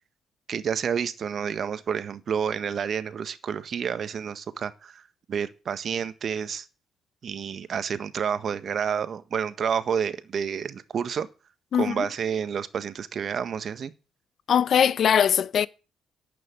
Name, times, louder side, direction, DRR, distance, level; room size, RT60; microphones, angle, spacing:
voice 1, 0.5-5.0 5.3-6.7 7.2-11.3 11.8-13.9, right 7 dB, 60° right, 1.5 m, -29 dB
voice 2, 11.7-12.1 14.5-15.7, left 8 dB, 60° left, 0.8 m, -21 dB
11.5 x 8.6 x 9.7 m
supercardioid pair, 60°, 0 cm